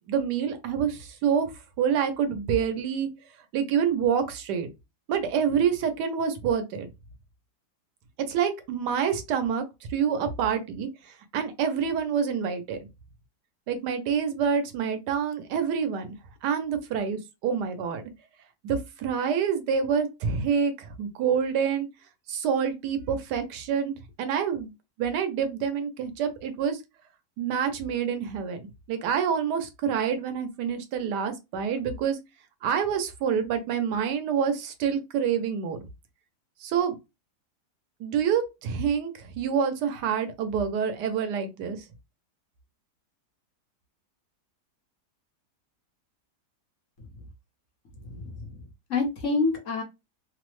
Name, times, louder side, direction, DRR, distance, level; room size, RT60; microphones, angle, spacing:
voice 1, 0.1-1.5 1.8-3.1 3.5-4.7 5.1-6.9 8.3-9.6 9.9-10.9 11.3-12.8 13.7-16.2 16.4-18.0 18.6-21.9 22.3-24.7 25.0-26.8 27.4-32.2 32.6-35.8 36.6-37.0 38.0-41.8, right 7 dB, 85° right, 1.3 m, -27 dB
voice 2, 47.9-49.8, left 3 dB, 60° left, 1.1 m, -29 dB
3.2 x 2.0 x 3.0 m
omnidirectional pair, 1.7 m